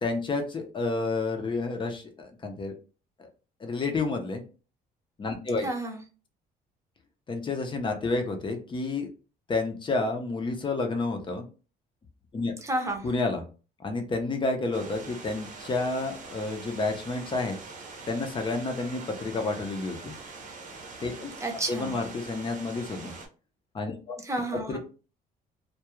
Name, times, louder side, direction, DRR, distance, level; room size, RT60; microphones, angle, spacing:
voice 1, 0.0-2.7 3.2-3.3 3.6-4.4 5.2-5.7 7.3-9.1 9.5-11.5 12.3-12.5 13.0-13.4 13.8-17.6 18.1-20.1 21.0-21.3 21.7-23.1 23.7-24.2 24.7-24.8, left 3 dB, 30° left, 4 dB, 0.7 m, -30 dB
voice 2, 5.6-6.0 12.6-13.1 21.4-22.0 24.2-24.8, right 2 dB, 15° right, 2 dB, 0.8 m, -31 dB
sound 1, 14.7-23.3, right 4 dB, 50° right, 0.8 m, -44 dB
2.3 x 2.3 x 3.0 m, 0.35 s
cardioid pair, 110°, 17 cm